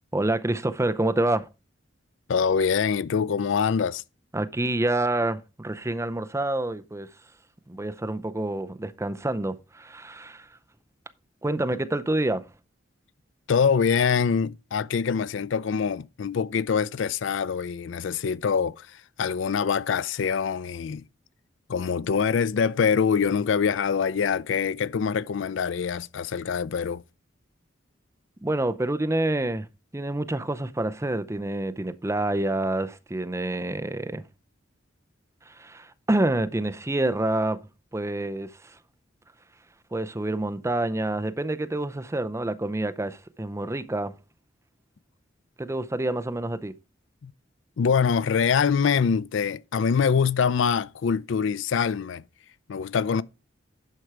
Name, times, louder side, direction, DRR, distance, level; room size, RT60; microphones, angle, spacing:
voice 1, 0.1-1.5 4.3-7.1 7.7-10.5 11.4-12.4 28.4-29.7 29.9-34.2 35.5-37.6 37.9-38.8 39.9-44.1 45.6-46.7, right 2 dB, 15° right, 0.5 m, -27 dB
voice 2, 2.3-4.0 13.5-18.9 19.2-21.0 21.7-27.0 47.2-47.3 47.8-52.2 52.7-53.2, left 6 dB, 70° left, 0.4 m, -24 dB
11.5 x 4.5 x 4.7 m
head